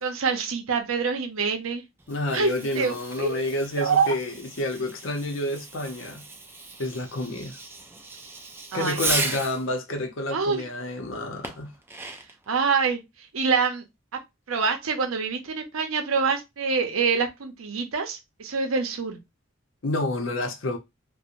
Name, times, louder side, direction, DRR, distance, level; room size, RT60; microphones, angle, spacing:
voice 1, 0.0-1.8 2.3-4.1 8.7-9.0 10.3-10.6 12.5-13.0 13.3-13.8 14.5-19.2, right 5 dB, 85° right, 0.6 m, -26 dB
Fireworks, 2.0-9.7 11.4-12.4, right 3 dB, 10° right, 0.3 m, -35 dB
voice 2, 2.1-6.2 6.8-7.6 8.7-11.7 19.8-20.8, left 1 dB, 65° left, 0.6 m, -29 dB
2.8 x 2.1 x 2.4 m
head